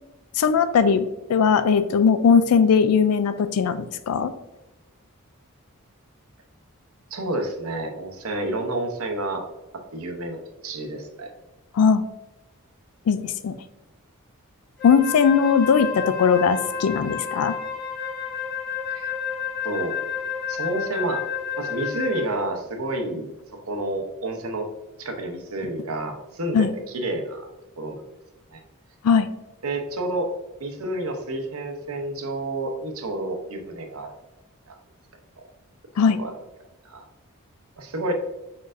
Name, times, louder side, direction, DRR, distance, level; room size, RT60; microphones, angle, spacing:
voice 1, 0.4-4.3 11.7-12.0 13.1-13.6 14.8-17.5 26.5-26.7 29.0-29.3 36.0-36.2, left 6 dB, 80° left, 11 dB, 0.4 m, -19 dB
voice 2, 7.1-9.5 9.9-10.4 10.6-11.3 18.9-19.1 19.6-20.0 20.5-21.2 21.6-23.3 23.7-24.7 25.0-27.5 27.8-28.0 28.5-28.6 29.6-30.3 30.6-34.2 34.7-34.8 36.2-36.3 36.8-37.0 37.8-38.1, right 1 dB, 75° right, 4 dB, 0.8 m, -29 dB
Wind instrument woodwind instrument, 14.8-22.4, left 7 dB, 50° left, 1.5 m, -31 dB
4.8 x 4.4 x 2.5 m, 1.0 s
head